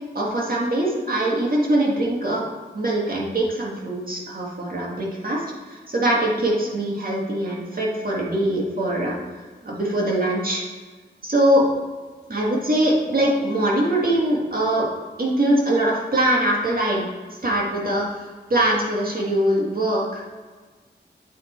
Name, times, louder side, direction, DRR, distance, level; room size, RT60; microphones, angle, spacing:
voice 1, 0.1-2.4 2.7-9.2 9.6-10.6 11.2-11.7 12.3-14.9 15.2-17.1 17.4-20.2, right 1 dB, 50° right, -3 dB, 1.8 m, -22 dB
8.3 x 4.4 x 4.3 m, 1.4 s
wide cardioid pair, 80°, 19 cm